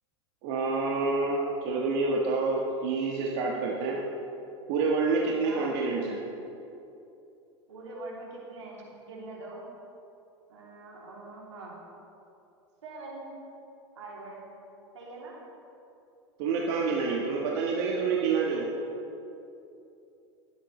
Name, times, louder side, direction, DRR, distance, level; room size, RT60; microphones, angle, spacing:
voice 1, 0.4-4.0 4.7-6.2 16.4-18.7, right 4 dB, 60° right, -2 dB, 1.4 m, -28 dB
voice 2, 5.4-5.8 7.7-9.7 10.5-11.8 12.8-13.3 13.9-14.4 14.9-15.4, right 2 dB, 80° right, -4 dB, 2.9 m, -43 dB
19.0 x 8.0 x 3.2 m, 2.7 s
hypercardioid pair, 90°, 15 cm